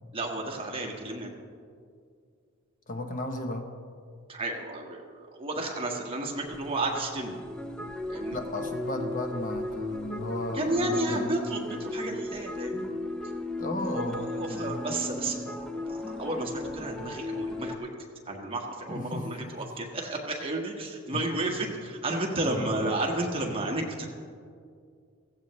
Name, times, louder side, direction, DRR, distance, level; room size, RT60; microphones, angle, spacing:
voice 1, 0.1-1.3 4.3-7.4 8.1-8.4 10.5-12.9 13.9-15.5 15.9-17.9 18.3-24.1, right 2 dB, 25° right, 0 dB, 1.5 m, -32 dB
voice 2, 2.9-3.7 8.3-11.4 13.6-14.8 18.9-19.5 21.1-21.2 22.5-23.0, left 1 dB, 40° left, 5 dB, 1.0 m, -35 dB
sound 1, 6.4-17.8, left 1 dB, 5° left, 0.6 m, -36 dB
16.0 x 15.5 x 3.2 m, 2.2 s
head